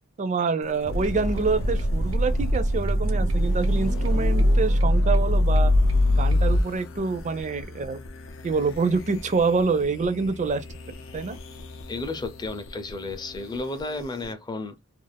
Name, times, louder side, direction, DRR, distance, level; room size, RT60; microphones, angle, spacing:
voice 1, 0.2-5.7 6.2-8.0 8.4-10.6 11.1-11.4, right 4 dB, 35° right, 0.4 m, -26 dB
sound 1, 0.6-14.3, left 2 dB, 65° left, 0.5 m, -40 dB
sound 2, 0.9-6.6, equal, 85° right, 0.5 m, -22 dB
voice 2, 11.9-14.9, left 2 dB, 20° left, 0.5 m, -33 dB
2.5 x 2.4 x 3.3 m
head